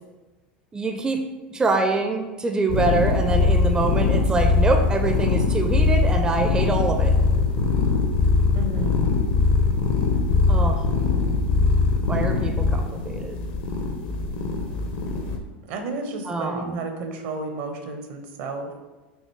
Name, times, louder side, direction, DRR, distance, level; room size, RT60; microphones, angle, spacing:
voice 1, 0.7-1.2 1.5-7.1 10.5-10.8 12.1-13.4 16.3-16.8, right 3 dB, 15° right, 4 dB, 0.4 m, -25 dB
sound 1, 2.7-15.4, left 4 dB, 55° left, 0.7 m, -21 dB
voice 2, 8.5-9.1 15.7-18.8, right 3 dB, 60° right, 5 dB, 0.7 m, -32 dB
5.5 x 2.9 x 3.2 m, 1.2 s
hypercardioid pair, 85°, 5 cm